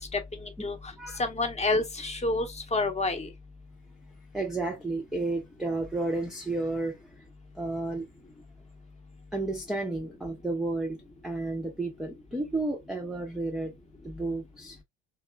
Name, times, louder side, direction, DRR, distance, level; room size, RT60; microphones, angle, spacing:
voice 1, 0.1-3.3, left 2 dB, 15° left, 0.8 m, -29 dB
voice 2, 4.3-7.0 7.6-8.0 9.3-13.7 14.0-14.8, right 2 dB, ahead, 0.5 m, -32 dB
2.8 x 2.4 x 2.2 m
hypercardioid pair, 75°, 38 cm